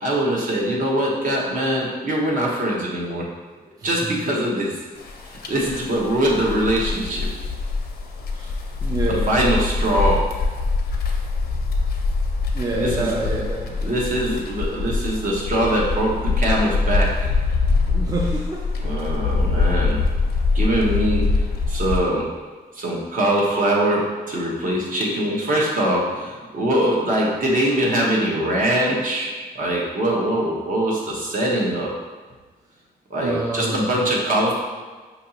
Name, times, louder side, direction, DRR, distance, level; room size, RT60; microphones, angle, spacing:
voice 1, 0.0-3.3 3.8-4.8 5.5-7.3 9.1-10.2 12.8-13.1 13.8-17.3 18.8-20.0 20.5-21.3 21.7-22.3 22.8-31.9 33.1-34.5, right 1 dB, 55° right, -3 dB, 0.9 m, -22 dB
voice 2, 3.8-4.2 8.4-8.5 8.8-9.3 12.5-13.8 17.9-18.6 33.2-33.9, right 2 dB, 25° right, -2 dB, 0.4 m, -27 dB
sound 1, 5.0-22.0, left 3 dB, 80° left, 0.5 m, -24 dB
5.3 x 2.9 x 2.7 m, 1.4 s
wide cardioid pair, 155°, 16 cm